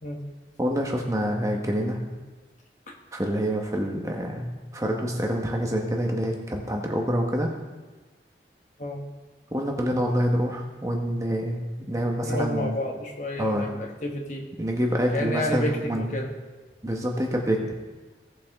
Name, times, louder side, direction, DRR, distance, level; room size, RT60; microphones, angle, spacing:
voice 1, 0.6-2.0 3.1-4.5 4.7-7.5 9.5-12.8 13.4-13.7 14.6-16.1 16.8-17.7, equal, 20° right, 1 dB, 1.0 m, -26 dB
voice 2, 12.2-14.5 15.1-16.3, left 1 dB, 45° left, 2 dB, 1.2 m, -30 dB
16.5 x 5.9 x 3.5 m, 1.2 s
head